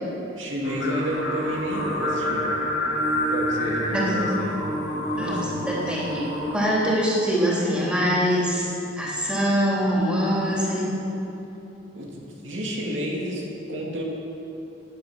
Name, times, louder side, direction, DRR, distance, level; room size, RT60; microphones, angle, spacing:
voice 1, 0.4-2.5 3.3-4.6 4.9-5.6 11.9-14.0, equal, 80° right, -2 dB, 2.5 m, -31 dB
Singing, 0.6-6.7, equal, 75° left, 4.1 m, -27 dB
voice 2, 3.9-4.2 5.1-8.7 9.0-10.9, equal, 5° right, -6 dB, 3.3 m, -24 dB
16.5 x 10.0 x 6.2 m, 3.0 s
head